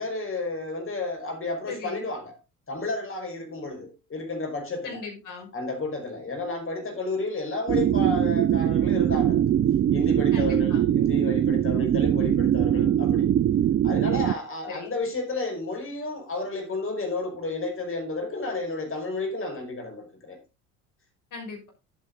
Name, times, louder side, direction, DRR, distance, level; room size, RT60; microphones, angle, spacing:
voice 1, 0.0-2.3 2.7-5.0 5.5-9.4 9.9-13.3 13.8-20.4, left 2 dB, 30° left, 5.4 m, -32 dB
voice 2, 1.7-2.0 4.8-5.5 10.3-10.8 14.7-14.9 21.3-21.7, left 4 dB, 45° left, 6.2 m, -38 dB
sound 1, 7.7-14.3, right 10 dB, 25° right, 0.5 m, -22 dB
10.5 x 8.9 x 4.0 m
figure-of-eight pair, 60°, 44 cm